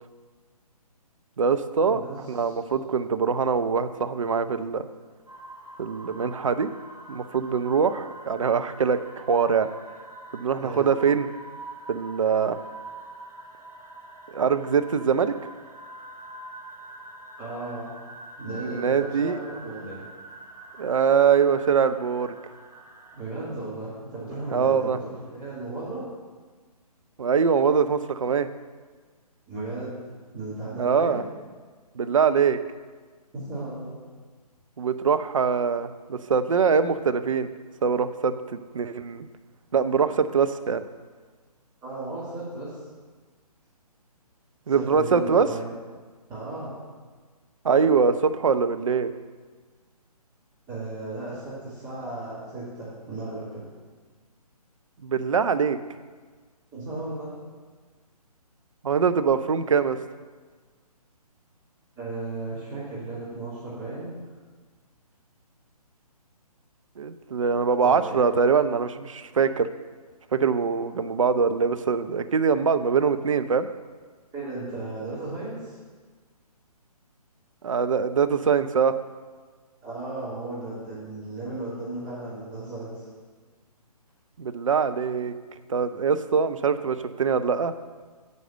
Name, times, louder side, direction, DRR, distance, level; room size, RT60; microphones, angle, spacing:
voice 1, 1.4-2.0 2.3-4.9 5.8-6.7 7.1-9.7 10.3-11.3 11.9-12.6 14.3-15.3 18.6-19.4 20.8-22.4 24.5-25.0 27.2-28.5 30.8-31.2 31.9-32.6 34.8-37.5 37.8-39.3 39.7-40.8 44.7-45.5 47.6-49.1 55.0-55.8 58.8-60.0 67.0-69.7 70.3-73.7 77.6-79.0 84.4-85.4 85.7-87.7, right 6 dB, 55° right, 10 dB, 0.6 m, -23 dB
sound 1, 5.3-23.2, right 2 dB, 80° right, 1.5 m, -44 dB
voice 2, 10.6-10.9 17.4-17.9 18.4-20.0 23.1-26.1 29.5-30.0 30.3-31.2 33.3-34.0 41.8-42.8 44.7-45.7 46.3-46.8 50.7-53.6 56.7-57.3 62.0-64.1 67.8-68.0 74.3-75.8 79.8-82.9, right 2 dB, 15° right, -12 dB, 3.0 m, -35 dB
9.5 x 4.9 x 7.6 m, 1.5 s
figure-of-eight pair, 140°, 20 cm